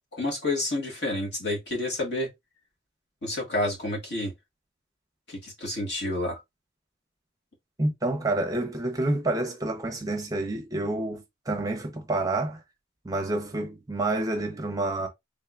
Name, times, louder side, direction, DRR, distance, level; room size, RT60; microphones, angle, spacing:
voice 1, 0.1-2.3 3.2-4.3 5.3-6.4, left 1 dB, 55° left, 1.6 m, -29 dB
voice 2, 7.8-12.6 13.0-15.1, right 2 dB, 15° right, 0.7 m, -28 dB
3.7 x 3.5 x 2.3 m
head